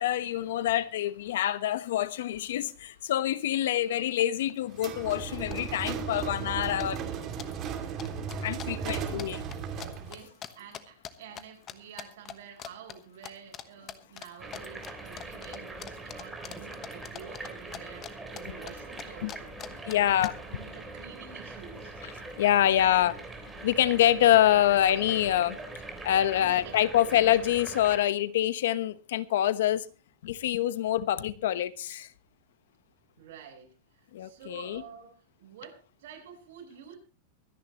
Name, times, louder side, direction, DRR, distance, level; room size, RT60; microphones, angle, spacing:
voice 1, 0.0-7.0 8.4-9.4 19.2-19.3 19.9-20.3 22.4-23.2 23.6-25.6 26.0-29.9 30.2-32.1 34.1-34.8, left 12 dB, 80° left, 1.0 m, -26 dB
sound 1, 4.2-4.3 4.5-4.9 5.2-5.9 6.2-6.5 6.8-11.4 11.7-12.3 12.6-13.0 13.2-13.6 13.9-18.1 18.4-20.3, left 10 dB, 25° left, 1.1 m, -43 dB
sound 2, 4.7-10.2, right 6 dB, 30° right, 2.5 m, -35 dB
voice 2, 8.7-9.1 10.0-22.0 26.4-27.2 33.2-37.0, right 7 dB, 70° right, 7.1 m, -49 dB
sound 3, 14.4-28.0, right 2 dB, 10° right, 3.2 m, -43 dB
24.5 x 10.5 x 3.0 m
supercardioid pair, 160°, 0 cm